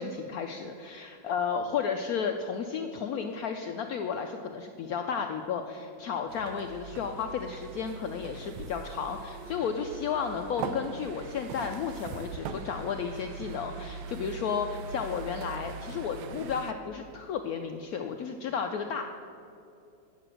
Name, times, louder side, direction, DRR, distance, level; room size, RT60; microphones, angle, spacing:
voice 1, 0.0-19.0, left 6 dB, 75° left, 5 dB, 0.8 m, -33 dB
sound 1, 6.3-16.7, right 4 dB, 70° right, 1.2 m, -41 dB
9.8 x 6.8 x 7.5 m, 2.6 s
omnidirectional pair, 2.1 m